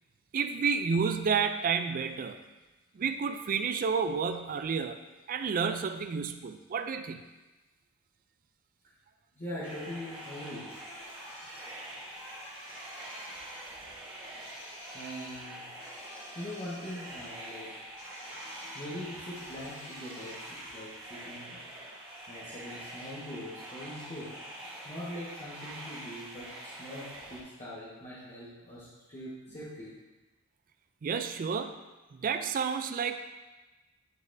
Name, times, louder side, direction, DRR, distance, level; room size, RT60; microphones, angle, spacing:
voice 1, 0.3-2.4 2.9-5.0 5.3-7.2 31.0-31.8 32.1-33.2, right 6 dB, 40° right, 9 dB, 0.3 m, -30 dB
voice 2, 9.3-10.7 14.9-15.6 16.3-17.9 18.7-21.7 22.3-24.3 24.8-29.9, left 1 dB, 30° left, -10 dB, 1.4 m, -42 dB
sound 1, 9.6-27.4, right 1 dB, 20° right, 1.3 m, -45 dB
sound 2, 10.7-21.1, left 1 dB, 90° left, 1.6 m, -52 dB
10.5 x 4.0 x 2.7 m, 1.1 s
head